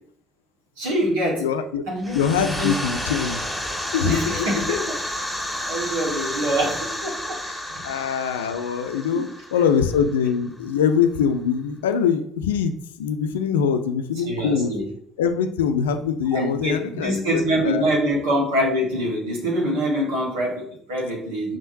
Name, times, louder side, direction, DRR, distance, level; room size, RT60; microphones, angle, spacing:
voice 1, 0.8-1.4 1.9-2.8 4.0-5.0 5.7-7.4 7.7-7.8 9.1-9.3 14.2-14.9 16.3-21.6, equal, 80° right, -2 dB, 1.5 m, -25 dB
voice 2, 1.4-1.9 2.1-3.4 3.9-4.7 7.4-7.5 7.8-14.7 15.2-17.8, left 7 dB, 85° left, 9 dB, 0.4 m, -23 dB
sound 1, 2.0-10.5, left 1 dB, 5° left, 1.8 m, -31 dB
4.9 x 3.6 x 2.7 m, 0.65 s
hypercardioid pair, 55°, 0 cm